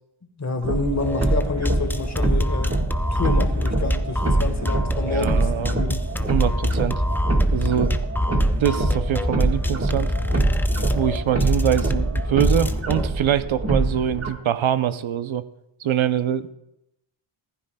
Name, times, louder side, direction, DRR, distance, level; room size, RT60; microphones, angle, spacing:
voice 1, 0.4-2.8 3.1-6.1, left 3 dB, 35° left, 6 dB, 1.4 m, -28 dB
sound 1, 0.6-14.3, right 2 dB, 30° right, 1.4 m, -24 dB
sound 2, 1.0-13.1, left 1 dB, 5° left, 0.4 m, -26 dB
voice 2, 5.0-5.8 6.2-7.0 7.5-8.0 8.6-10.1 10.9-15.5 15.8-16.5, right 10 dB, 70° right, 13 dB, 0.6 m, -24 dB
15.0 x 14.0 x 2.2 m, 0.85 s
wide cardioid pair, 85°, 49 cm